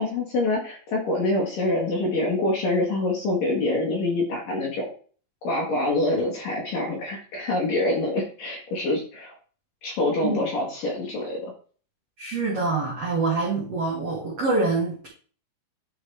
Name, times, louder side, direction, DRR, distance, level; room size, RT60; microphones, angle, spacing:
voice 1, 0.0-4.9 5.4-9.3 9.8-11.5, left 2 dB, 60° left, -3 dB, 2.5 m, -25 dB
voice 2, 12.2-15.1, right 3 dB, 60° right, -4 dB, 1.6 m, -25 dB
10.0 x 5.0 x 3.4 m, 0.41 s
omnidirectional pair, 5.7 m